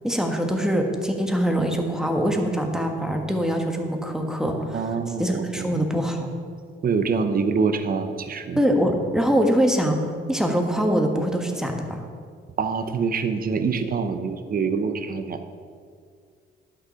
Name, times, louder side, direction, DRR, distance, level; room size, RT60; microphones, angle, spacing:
voice 1, 0.0-6.3 8.6-12.0, equal, 5° right, 3 dB, 1.4 m, -23 dB
voice 2, 4.7-5.7 6.8-8.6 12.6-15.4, right 5 dB, 45° right, 9 dB, 0.8 m, -25 dB
11.0 x 6.2 x 5.7 m, 2.1 s
cardioid pair, 90°, 20 cm